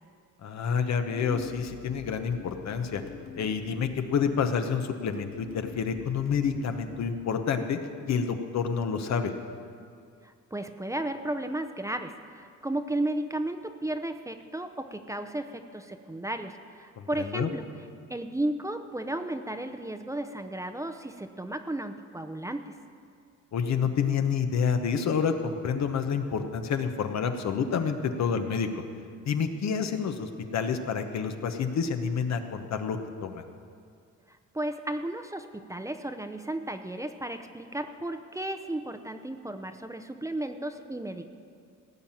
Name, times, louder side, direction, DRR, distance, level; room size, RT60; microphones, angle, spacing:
voice 1, 0.4-3.0 3.4-7.8 8.1-9.3 17.0-17.1 17.3-17.5 23.5-28.8 29.2-33.4, left 6 dB, 65° left, 7 dB, 1.1 m, -28 dB
sound 1, 1.1-7.1, left 6 dB, 45° left, 0.8 m, -45 dB
voice 2, 10.2-17.7 18.1-22.8 34.3-41.3, right 1 dB, 10° right, 6 dB, 0.7 m, -34 dB
16.5 x 5.8 x 9.1 m, 2.3 s
cardioid pair, 90°, 30 cm